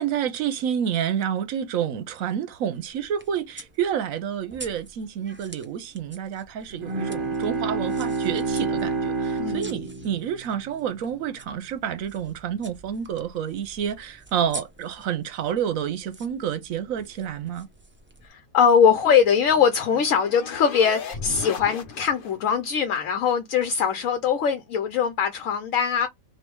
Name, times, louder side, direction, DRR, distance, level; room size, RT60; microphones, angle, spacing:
voice 1, 0.0-17.7, right 9 dB, 75° right, 1.1 m, -29 dB
sound 1, 2.7-18.3, right 2 dB, 15° right, 0.4 m, -47 dB
Bowed string instrument, 6.7-11.3, right 3 dB, 45° right, 0.8 m, -29 dB
voice 2, 9.4-10.1 18.2-26.1, left 7 dB, 70° left, 1.1 m, -22 dB
sound 2, 18.9-22.5, left 4 dB, 50° left, 0.8 m, -37 dB
3.4 x 2.7 x 4.5 m
omnidirectional pair, 1.5 m